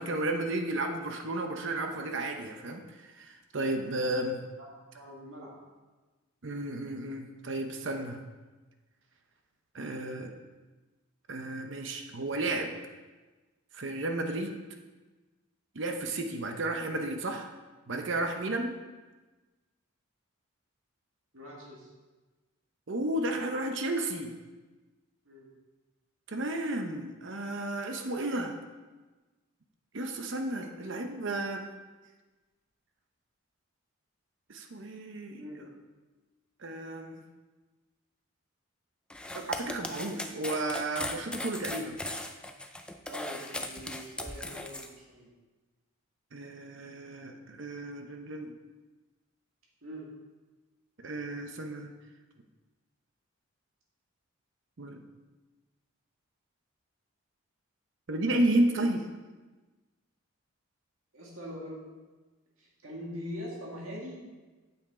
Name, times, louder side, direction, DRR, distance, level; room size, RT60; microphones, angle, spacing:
voice 1, 0.0-2.8 3.1-4.5 6.4-8.2 9.7-10.3 11.3-12.7 13.7-14.6 15.8-17.5 17.9-18.8 22.9-24.3 26.3-28.5 29.9-31.7 34.5-35.4 36.6-37.2 39.3-42.0 46.3-48.5 51.0-51.9 54.8-55.0 58.1-59.1, right 1 dB, 55° right, 4 dB, 0.7 m, -32 dB
voice 2, 4.9-5.6 21.3-21.9 25.3-25.5 35.3-35.7 43.1-45.3 49.8-50.0 61.1-61.8 62.6-64.2, equal, 75° right, -4 dB, 2.0 m, -43 dB
sound 1, 39.1-44.9, left 1 dB, 5° left, 0.4 m, -37 dB
8.7 x 7.2 x 3.7 m, 1.2 s
head